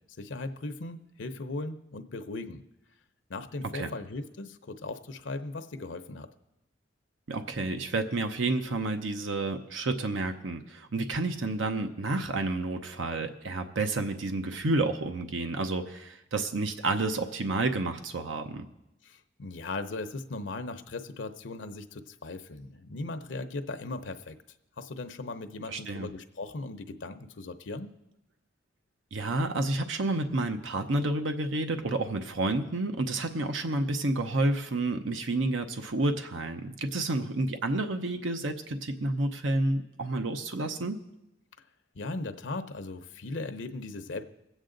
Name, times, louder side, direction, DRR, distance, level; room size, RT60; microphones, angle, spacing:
voice 1, 0.2-2.6 3.3-6.3 19.0-24.4 24.8-27.9 41.9-44.2, left 2 dB, 75° left, 8 dB, 0.7 m, -38 dB
voice 2, 7.3-18.7 25.7-26.1 29.1-41.0, right 2 dB, 90° right, 6 dB, 0.8 m, -30 dB
21.5 x 8.2 x 3.9 m, 0.88 s
head